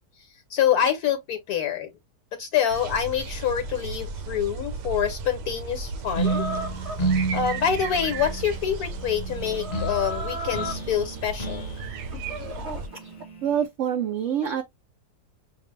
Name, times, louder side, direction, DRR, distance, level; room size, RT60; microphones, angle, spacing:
voice 1, 0.2-1.9 2.3-6.5 7.3-11.7, left 8 dB, 70° left, 1.2 m, -26 dB
sound 1, 2.7-12.9, right 3 dB, 90° right, 1.3 m, -35 dB
sound 2, 6.2-13.7, right 3 dB, 30° left, 0.8 m, -32 dB
Chicken rooster, 6.2-13.2, equal, 45° right, 1.6 m, -38 dB
voice 2, 13.4-14.6, right 9 dB, 60° right, 0.9 m, -25 dB
5.9 x 2.0 x 3.1 m
omnidirectional pair, 1.8 m